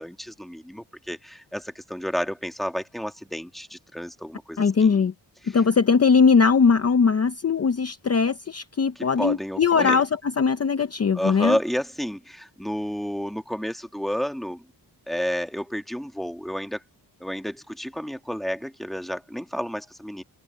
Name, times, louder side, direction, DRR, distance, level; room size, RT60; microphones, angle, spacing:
voice 1, 0.0-5.0 5.4-5.6 8.9-10.0 11.1-14.7 15.1-16.8 17.2-20.2, equal, ahead, 1.7 m, -31 dB
voice 2, 4.6-5.1 5.5-10.1 10.4-11.6, left 5 dB, 35° left, 0.6 m, -20 dB
wide cardioid pair, 170°, 43 cm